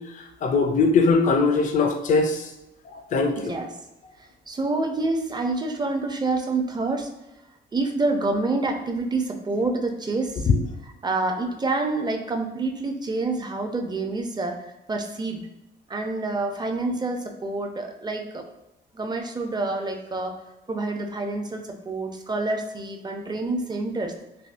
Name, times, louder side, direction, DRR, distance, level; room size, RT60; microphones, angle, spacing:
voice 1, 0.4-2.4 3.1-3.5 10.5-10.6, left 4 dB, 40° left, 5 dB, 0.4 m, -20 dB
voice 2, 3.3-3.8 4.2-7.1 7.7-10.5 10.8-15.4 15.9-18.4 18.9-20.3 20.7-24.1, right 3 dB, 20° right, 4 dB, 0.4 m, -27 dB
3.4 x 2.1 x 2.4 m, 0.91 s
cardioid pair, 90°, 20 cm